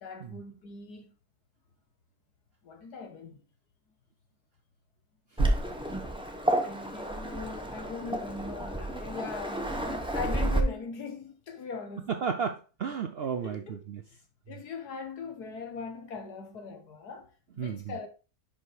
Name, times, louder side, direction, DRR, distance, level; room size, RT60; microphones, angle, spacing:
voice 1, 0.0-1.1 2.6-3.4 6.1-6.2 6.6-12.1 13.4-13.8 14.1-14.2 14.5-18.1, left 4 dB, 85° left, 1.8 m, -40 dB
Waves surf, 5.4-10.6, right 1 dB, 5° right, 0.8 m, -30 dB
voice 2, 12.2-14.0 17.6-17.9, right 6 dB, 65° right, 0.6 m, -33 dB
5.6 x 5.4 x 4.7 m
omnidirectional pair, 1.6 m